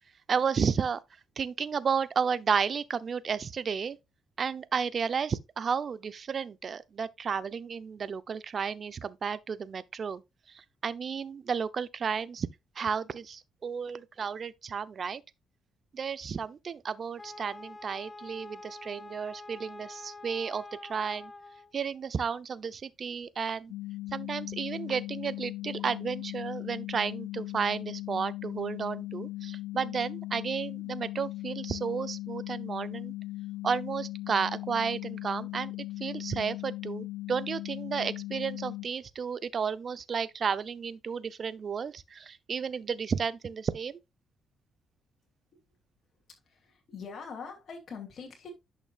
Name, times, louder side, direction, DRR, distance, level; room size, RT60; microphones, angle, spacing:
voice 1, 0.3-1.0 1.4-4.0 4.4-10.2 10.5-12.5 12.8-15.2 15.9-21.3 21.7-23.7 24.1-33.1 33.6-35.7 36.0-44.0, right 6 dB, 45° right, 0.6 m, -32 dB
Wind instrument woodwind instrument, 17.2-21.7, left 2 dB, 20° left, 1.3 m, -46 dB
sound 1, 23.7-38.9, left 17 dB, 80° left, 0.5 m, -38 dB
voice 2, 46.5-48.5, left 5 dB, 55° left, 2.6 m, -43 dB
11.0 x 6.0 x 2.4 m
cardioid pair, 90°, 0 cm